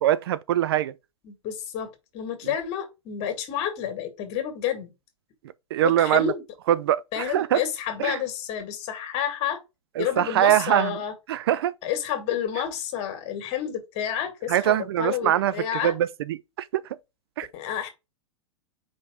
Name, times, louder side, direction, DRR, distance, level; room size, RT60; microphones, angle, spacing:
voice 1, 0.0-0.9 5.7-6.3 6.7-7.6 8.0-8.2 10.0-11.0 11.3-11.7 14.5-16.8 17.4-17.5, right 12 dB, 50° right, 0.4 m, -23 dB
voice 2, 1.2-4.9 5.8-6.4 7.1-9.6 10.0-11.1 11.8-16.0 17.5-17.9, left 9 dB, 40° left, 1.8 m, -30 dB
5.0 x 4.0 x 5.0 m
figure-of-eight pair, 95°, 16 cm